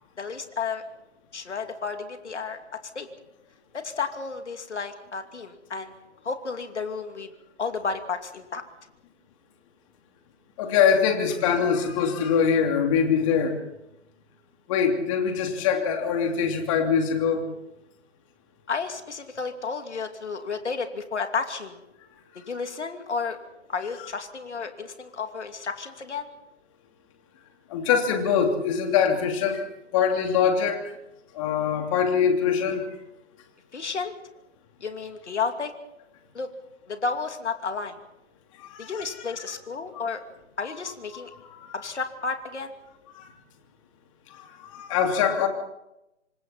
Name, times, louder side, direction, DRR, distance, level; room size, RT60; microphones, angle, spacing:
voice 1, 0.2-0.8 1.3-2.6 2.9-3.1 3.7-5.9 6.2-7.3 7.6-8.6 18.7-21.8 22.5-23.4 23.7-26.3 33.7-34.1 34.8-35.7 36.3-36.5 36.9-38.0 38.8-40.2 40.6-41.3 41.7-42.7, left 5 dB, 65° left, 6 dB, 2.8 m, -32 dB
voice 2, 10.6-13.6 14.7-17.4 27.7-29.7 29.9-30.8 31.3-32.8 38.6-38.9 41.6-41.7 43.1-43.3 44.3-45.5, left 7 dB, 25° left, 4 dB, 3.0 m, -23 dB
26.5 x 26.0 x 4.3 m, 0.89 s
figure-of-eight pair, 145°, 37 cm